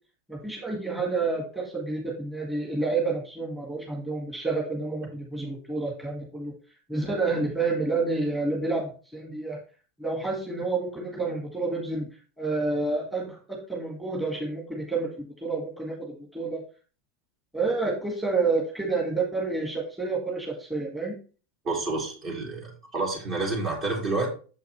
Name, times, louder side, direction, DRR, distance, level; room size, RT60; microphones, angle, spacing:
voice 1, 0.3-6.5 6.9-9.6 10.0-12.0 12.4-15.1 15.4-16.6 17.5-21.1, right 3 dB, 5° right, 1 dB, 1.7 m, -29 dB
voice 2, 21.6-24.3, right 3 dB, 40° right, -1 dB, 3.0 m, -29 dB
7.1 x 5.7 x 3.2 m, 0.37 s
hypercardioid pair, 90°, 0 cm